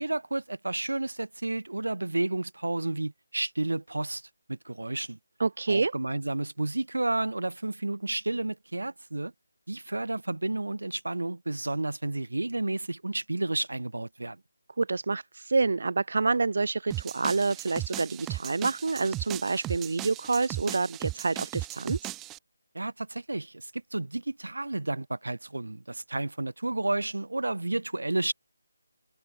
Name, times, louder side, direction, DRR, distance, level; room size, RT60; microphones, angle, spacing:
voice 1, 0.0-5.2 5.7-9.3 9.7-14.4 22.7-28.3, right 2 dB, 90° right, 1.7 m, -31 dB
voice 2, 5.4-5.9 14.8-22.0, right 3 dB, 60° right, 1.3 m, -27 dB
sound 1, 16.9-22.4, right 17 dB, 10° right, 2.9 m, -37 dB
figure-of-eight pair, 165°, 0 cm